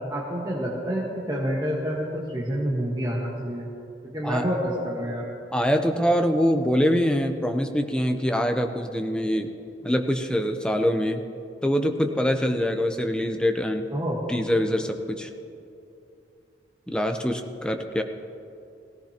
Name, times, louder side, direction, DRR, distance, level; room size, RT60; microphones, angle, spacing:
voice 1, 0.1-3.7 4.1-5.2 13.9-14.2, equal, 20° right, -5 dB, 1.4 m, -28 dB
voice 2, 5.5-9.5 9.8-11.2 11.6-13.9 14.3-15.3 16.9-18.0, equal, 5° left, 5 dB, 0.7 m, -24 dB
18.0 x 16.0 x 2.9 m, 2.6 s
head